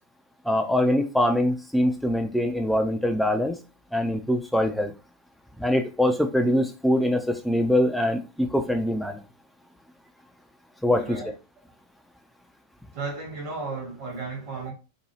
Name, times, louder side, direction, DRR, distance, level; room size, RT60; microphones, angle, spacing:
voice 1, 0.5-3.6 3.9-4.9 5.6-9.2 10.8-11.2, left 1 dB, ahead, 0.4 m, -23 dB
voice 2, 10.9-11.3 12.9-14.7, right 3 dB, 50° right, 1.2 m, -34 dB
2.8 x 2.2 x 2.9 m
figure-of-eight pair, 90°, 0 cm